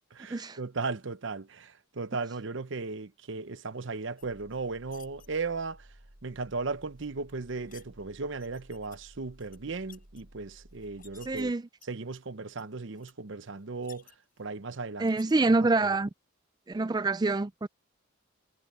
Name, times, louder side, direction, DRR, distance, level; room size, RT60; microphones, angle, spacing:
voice 1, 0.2-5.9 6.2-11.5 11.9-14.1 14.4-15.1, right 4 dB, 65° right, 0.8 m, -36 dB
sound 1, 4.2-5.3 7.0-7.9 8.4-9.0 9.3-10.2 10.8-11.4 11.8-12.2 12.6-12.7 12.9-13.1 13.5-14.5 15.0-15.3, left 10 dB, 45° left, 7.7 m, -56 dB
sound 2, 4.2-11.5, right 1 dB, 90° right, 3.5 m, -56 dB
voice 2, 11.3-11.6 15.0-16.1 16.7-17.7, right 3 dB, 20° right, 0.4 m, -26 dB
head